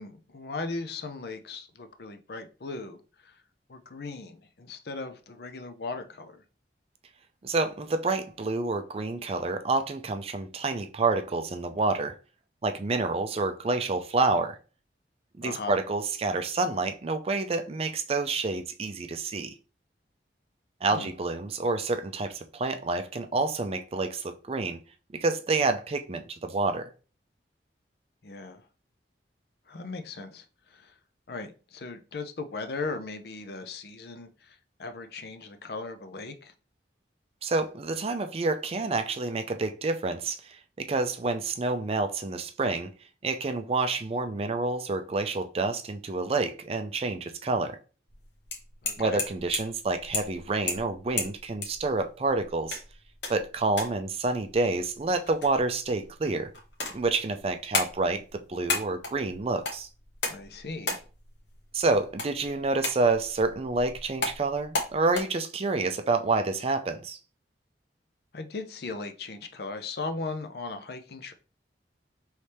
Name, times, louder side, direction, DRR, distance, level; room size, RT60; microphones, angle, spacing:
voice 1, 0.0-3.4 3.7-6.4 15.4-15.8 20.9-21.1 28.2-28.7 29.7-31.0 31.3-36.5 48.8-49.2 60.3-61.0 68.3-71.3, left 3 dB, 60° left, 0.5 m, -38 dB
voice 2, 7.4-12.2 12.6-14.6 15.4-19.5 20.8-24.8 25.1-26.9 37.4-42.9 43.2-47.8 49.0-52.8 53.3-56.5 56.9-59.9 61.7-67.2, right 3 dB, 35° right, 0.4 m, -28 dB
sound 1, 48.1-65.2, left 3 dB, 85° left, 1.1 m, -36 dB
4.2 x 3.2 x 3.3 m
head